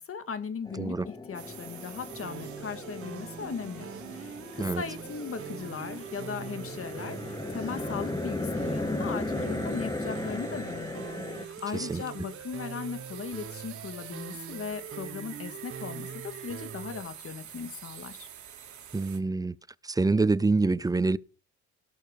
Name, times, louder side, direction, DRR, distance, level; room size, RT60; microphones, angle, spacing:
voice 1, 0.0-11.0 11.3-18.3, left 6 dB, 50° left, 1.9 m, -38 dB
sound 1, 0.6-11.4, left 2 dB, 10° left, 1.5 m, -36 dB
sound 2, 1.3-19.2, right 9 dB, 70° right, 2.4 m, -48 dB
sound 3, 2.1-17.0, right 7 dB, 45° right, 1.3 m, -43 dB
voice 2, 18.9-19.5 19.8-21.2, right 3 dB, 10° right, 0.5 m, -26 dB
17.0 x 6.4 x 5.4 m
cardioid pair, 90°, 30 cm